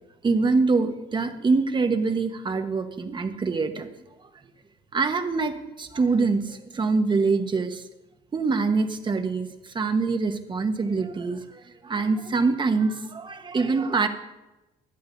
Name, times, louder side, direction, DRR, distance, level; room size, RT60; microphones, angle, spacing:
voice 1, 0.2-3.9 4.9-7.8 8.3-14.1, right 4 dB, 30° right, 7 dB, 1.2 m, -24 dB
19.0 x 12.0 x 2.7 m, 1.0 s
cardioid pair, 110°, 17 cm